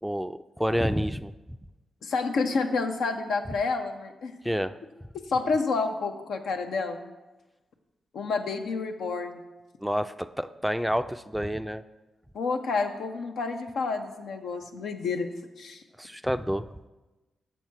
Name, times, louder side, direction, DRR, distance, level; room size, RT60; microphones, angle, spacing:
voice 1, 0.0-1.3 4.4-4.7 9.8-11.8 16.0-16.7, equal, ahead, 10 dB, 0.3 m, -29 dB
voice 2, 2.0-4.3 5.3-7.0 8.1-9.4 12.3-15.3 15.6-15.8, left 4 dB, 80° left, 5 dB, 0.7 m, -29 dB
7.3 x 6.4 x 4.5 m, 1.1 s
cardioid pair, 55°, 0 cm